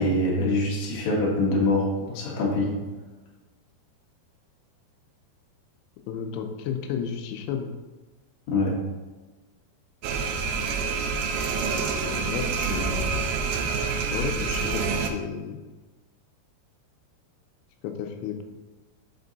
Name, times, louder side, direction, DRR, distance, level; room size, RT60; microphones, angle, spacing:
voice 1, 0.0-2.8 8.5-8.8, left 1 dB, 55° left, -4 dB, 2.3 m, -24 dB
voice 2, 6.1-7.7 12.0-13.2 14.1-15.6 17.8-18.4, left 7 dB, 90° left, 5 dB, 2.8 m, -32 dB
sound 1, 10.0-15.1, right 5 dB, 80° right, 2.4 m, -27 dB
7.5 x 4.4 x 4.0 m, 1.2 s
omnidirectional pair, 4.8 m